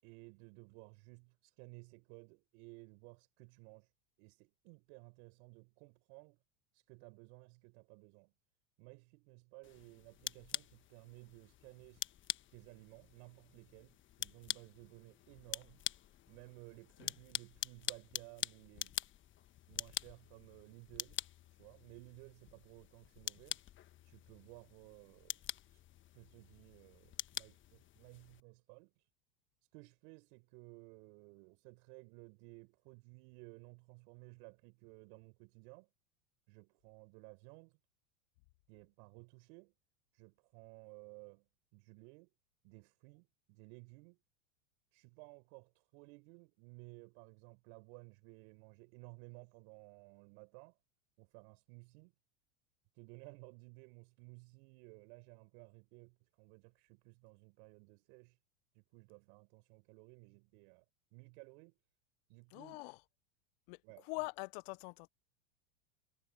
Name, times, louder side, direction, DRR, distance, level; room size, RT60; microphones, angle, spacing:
voice 1, 0.0-3.9 4.2-6.4 6.7-8.3 8.8-12.1 12.5-15.8 16.3-19.0 19.7-21.2 21.6-23.6 24.1-25.4 26.1-29.1 29.7-35.9 36.5-37.8 38.7-39.7 40.1-41.5 41.7-42.3 42.6-44.2 44.9-50.8 51.2-52.1 52.9-58.4 58.7-60.8 61.1-61.8 62.3-62.8 63.8-64.2, right 34 dB, 60° right, 5.8 m, -57 dB
sound 1, 9.6-28.4, left 12 dB, 30° left, 1.2 m, -46 dB
voice 2, 62.5-63.0 63.7-65.1, left 30 dB, 50° left, 0.6 m, -44 dB
hypercardioid pair, 105°, 39 cm